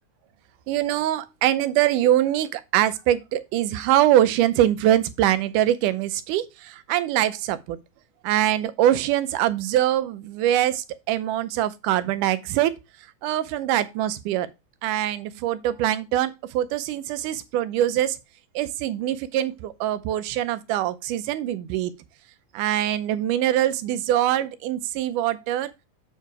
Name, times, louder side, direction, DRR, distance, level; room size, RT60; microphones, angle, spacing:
voice 1, 0.7-7.8 8.2-12.7 13.2-14.5 14.8-18.2 18.6-21.9 22.5-25.7, right 12 dB, 85° right, 2.2 m, -23 dB
7.9 x 4.7 x 4.6 m
omnidirectional pair, 3.6 m